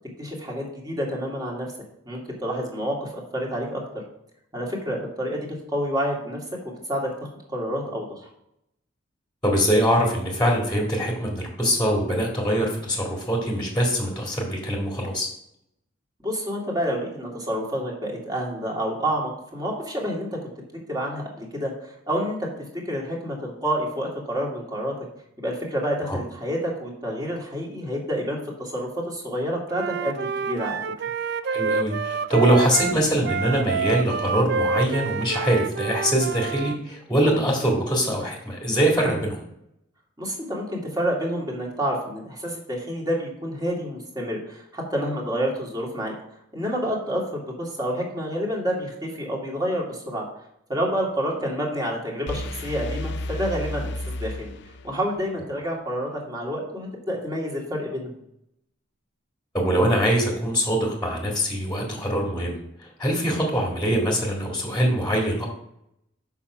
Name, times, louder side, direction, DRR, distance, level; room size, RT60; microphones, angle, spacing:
voice 1, 0.2-1.7 2.1-3.8 4.5-5.5 5.7-6.4 6.6-8.3 16.2-20.3 20.7-22.4 22.9-24.9 25.4-30.8 40.2-46.1 46.5-50.3 50.7-54.5 54.8-58.1, equal, 20° right, -2 dB, 2.2 m, -28 dB
voice 2, 9.4-15.3 26.1-26.2 31.4-39.4 59.5-62.6 63.0-65.5, equal, 5° left, -1 dB, 1.9 m, -23 dB
Wind instrument woodwind instrument, 29.7-36.8, right 5 dB, 55° right, 0.4 m, -28 dB
sound 1, 52.3-55.2, left 1 dB, 60° left, 0.5 m, -32 dB
7.2 x 5.8 x 6.1 m, 0.77 s
head